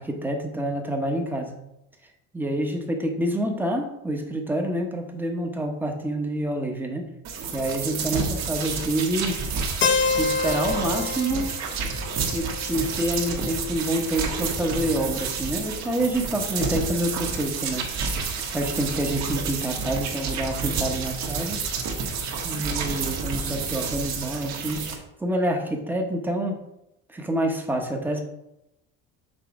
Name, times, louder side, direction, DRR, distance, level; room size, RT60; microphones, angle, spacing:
voice 1, 0.0-1.6 2.3-7.1 7.5-9.4 10.1-11.5 12.3-18.1 18.5-21.6 22.4-26.6 27.1-28.2, right 1 dB, 5° right, 3 dB, 0.9 m, -27 dB
sound 1, 7.2-25.0, right 5 dB, 55° right, 1.5 m, -30 dB
Keyboard (musical), 9.8-13.7, left 5 dB, 35° left, 0.6 m, -28 dB
6.3 x 4.1 x 5.8 m, 0.85 s
cardioid pair, 160°, 32 cm